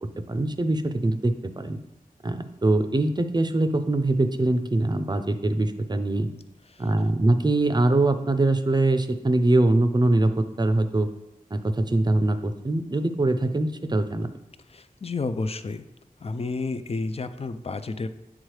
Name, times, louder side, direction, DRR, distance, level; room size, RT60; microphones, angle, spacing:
voice 1, 0.0-1.8 2.2-6.3 6.8-11.1 11.5-14.3, right 2 dB, 30° right, 9 dB, 0.5 m, -23 dB
voice 2, 14.7-15.8 16.2-18.1, left 3 dB, 40° left, 10 dB, 0.4 m, -31 dB
7.9 x 3.7 x 3.2 m, 0.91 s
wide cardioid pair, 50°, 15 cm